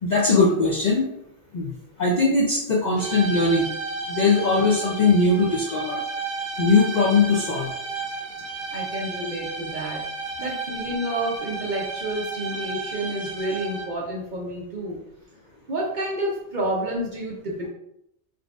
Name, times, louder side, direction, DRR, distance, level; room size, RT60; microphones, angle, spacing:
voice 1, 0.0-1.1 1.5-1.7 2.0-3.7 4.1-6.0 6.6-7.7, left 3 dB, 55° left, -3 dB, 0.5 m, -20 dB
sound 1, 3.0-14.1, right 4 dB, 70° right, 1.0 m, -33 dB
voice 2, 8.7-10.0 10.4-15.0 15.7-17.7, right 1 dB, 50° right, -2 dB, 0.6 m, -29 dB
3.7 x 2.5 x 2.3 m, 0.79 s
omnidirectional pair, 1.2 m